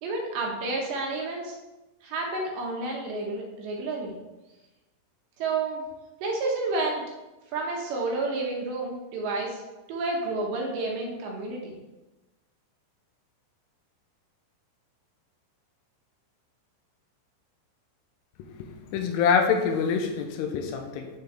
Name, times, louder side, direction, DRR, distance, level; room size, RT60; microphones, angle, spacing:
voice 1, 0.0-1.6 2.0-4.1 5.4-5.8 6.2-7.0 7.5-9.6 9.9-11.8, right 3 dB, 70° right, -1 dB, 3.0 m, -30 dB
voice 2, 18.5-21.1, left 6 dB, 80° left, 4 dB, 3.3 m, -26 dB
13.0 x 4.8 x 3.4 m, 1.1 s
omnidirectional pair, 5.8 m